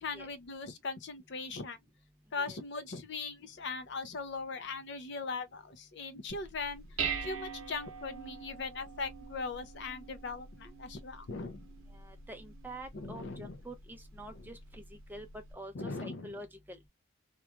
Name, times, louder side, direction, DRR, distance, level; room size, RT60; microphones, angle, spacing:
voice 1, 0.0-1.8 2.3-6.8 7.2-11.7 12.9-13.6 14.4-14.5 15.7-16.3, left 4 dB, 55° left, 0.5 m, -39 dB
Dishes pots and pans, 6.3-15.5, right 6 dB, 75° right, 0.7 m, -44 dB
voice 2, 11.9-14.8 15.1-15.3 15.5-16.8, right 1 dB, 10° right, 0.5 m, -47 dB
2.9 x 2.3 x 2.3 m
head